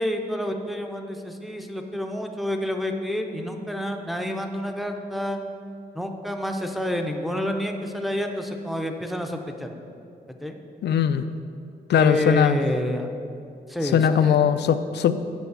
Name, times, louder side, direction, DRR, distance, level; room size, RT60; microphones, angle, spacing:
voice 1, 0.0-5.4 5.9-9.7 10.4-10.6 12.0-13.1 13.7-14.4, left 1 dB, ahead, 4 dB, 0.6 m, -28 dB
voice 2, 10.8-11.2 11.9-12.6 13.9-15.1, left 8 dB, 80° left, 11 dB, 0.5 m, -20 dB
8.1 x 6.2 x 8.0 m, 2.5 s
wide cardioid pair, 170°, 17 cm